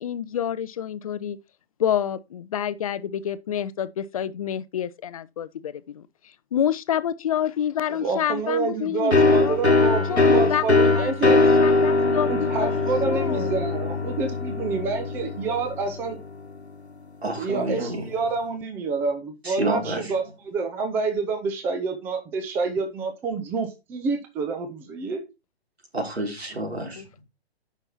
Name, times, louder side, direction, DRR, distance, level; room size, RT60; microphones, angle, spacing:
voice 1, 0.0-1.4 1.8-6.0 6.5-9.6 10.1-10.6 11.0-13.5 27.0-27.2, left 9 dB, 35° left, 0.6 m, -28 dB
voice 2, 8.0-11.4 12.2-16.2 17.4-25.2, right 4 dB, 5° right, 0.6 m, -28 dB
sound 1, 9.1-16.6, left 3 dB, 85° left, 1.3 m, -21 dB
voice 3, 17.2-18.1 19.4-20.1 25.9-27.0, right 2 dB, 75° right, 4.1 m, -29 dB
9.6 x 5.9 x 4.4 m
figure-of-eight pair, 125°, 32 cm